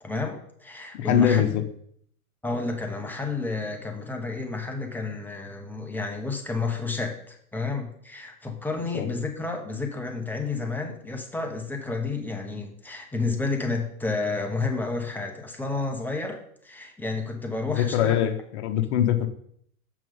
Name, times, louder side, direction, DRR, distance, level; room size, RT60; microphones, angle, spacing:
voice 1, 0.0-1.4 2.4-16.4 16.6-18.2, left 3 dB, 5° left, 2 dB, 1.0 m, -31 dB
voice 2, 0.9-1.7 8.9-9.1 17.8-19.3, left 10 dB, 50° left, 7 dB, 1.2 m, -23 dB
7.1 x 6.0 x 5.3 m, 0.66 s
hypercardioid pair, 125°, 45 cm